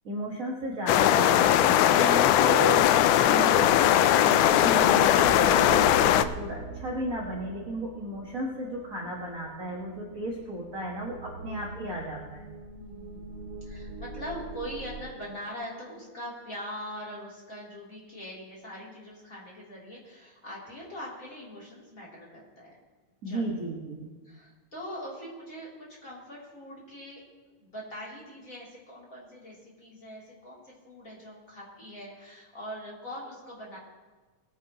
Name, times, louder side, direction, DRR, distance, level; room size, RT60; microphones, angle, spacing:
voice 1, 0.0-12.5 23.2-24.1, right 1 dB, 40° right, -3 dB, 1.2 m, -34 dB
sound 1, 0.9-6.2, left 11 dB, 85° left, 2.0 m, -20 dB
sound 2, 3.9-15.0, right 4 dB, 65° right, 2.4 m, -41 dB
voice 2, 12.8-22.8 23.2-23.6 24.0-33.8, equal, 25° left, -5 dB, 3.4 m, -42 dB
19.5 x 10.0 x 3.0 m, 1.3 s
omnidirectional pair, 3.5 m